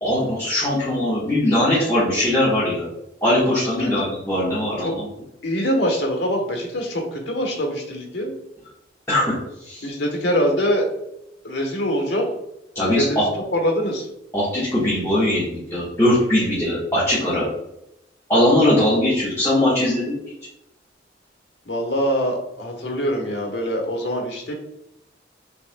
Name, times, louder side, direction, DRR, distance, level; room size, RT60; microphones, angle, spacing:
voice 1, 0.0-2.9 3.2-5.1 9.1-9.3 9.6-9.8 12.7-13.2 14.3-17.5 18.3-20.2, left 1 dB, 15° left, -11 dB, 1.3 m, -20 dB
voice 2, 5.4-8.3 9.8-10.9 11.4-12.3 12.8-14.1 21.7-24.5, equal, 70° left, 1 dB, 1.2 m, -24 dB
6.1 x 3.3 x 2.2 m, 0.86 s
head